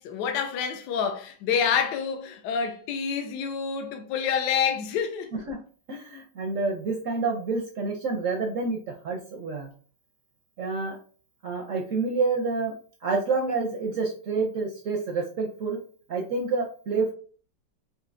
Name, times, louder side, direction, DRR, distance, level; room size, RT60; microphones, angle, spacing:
voice 1, 0.0-5.4, left 7 dB, 75° left, 1.2 m, -28 dB
voice 2, 5.9-9.7 10.6-11.0 11.4-12.7 13.0-15.8 16.1-17.1, right 4 dB, 65° right, 0.8 m, -28 dB
5.3 x 2.7 x 2.6 m
omnidirectional pair, 2.0 m